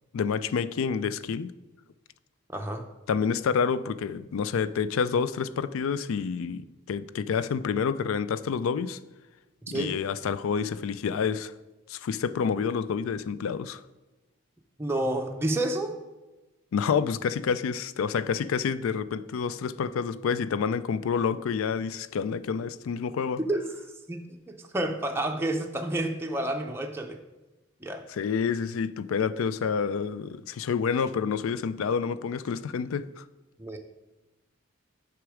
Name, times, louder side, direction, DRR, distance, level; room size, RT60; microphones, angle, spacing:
voice 1, 0.1-1.5 3.1-9.0 9.7-11.5 11.9-13.8 16.7-23.4 28.1-33.2, left 6 dB, 80° left, 0.3 m, -28 dB
voice 2, 2.5-2.9 9.7-10.0 14.8-15.9 23.4-23.6 24.1-27.2 27.8-28.1 33.6-33.8, right 1 dB, 10° right, 0.5 m, -30 dB
6.3 x 6.0 x 4.8 m
head